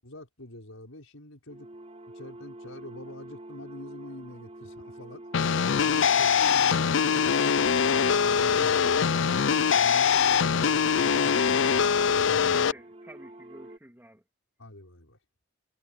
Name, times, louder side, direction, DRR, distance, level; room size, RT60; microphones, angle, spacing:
voice 1, 0.0-1.7 2.1-5.2 5.5-7.8 8.1-12.7 14.6-15.2, left 1 dB, 85° left, 5.5 m, -45 dB
sound 1, 1.5-13.8, right 1 dB, 30° right, 3.9 m, -46 dB
sound 2, 5.3-12.7, left 6 dB, 65° left, 0.5 m, -23 dB
voice 2, 8.5-9.1 12.3-14.2, right 1 dB, 10° right, 2.4 m, -50 dB
head